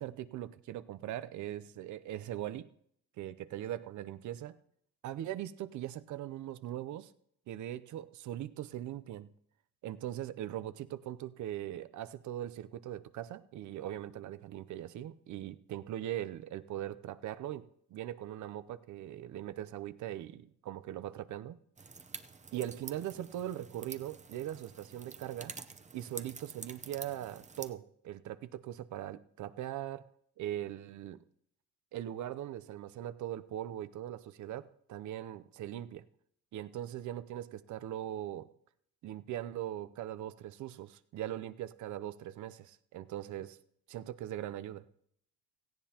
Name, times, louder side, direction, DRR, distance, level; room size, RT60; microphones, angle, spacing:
voice 1, 0.0-2.7 3.2-4.6 5.0-7.1 7.5-9.3 9.8-21.6 22.5-25.5 25.9-30.1 30.4-31.2 31.9-36.0 36.5-38.5 39.0-43.6 43.9-44.8, right 12 dB, 75° right, 14 dB, 0.6 m, -40 dB
sound 1, 21.8-27.7, right 5 dB, 25° right, 0.7 m, -48 dB
17.0 x 14.5 x 2.9 m, 0.70 s
cardioid pair, 90°, 30 cm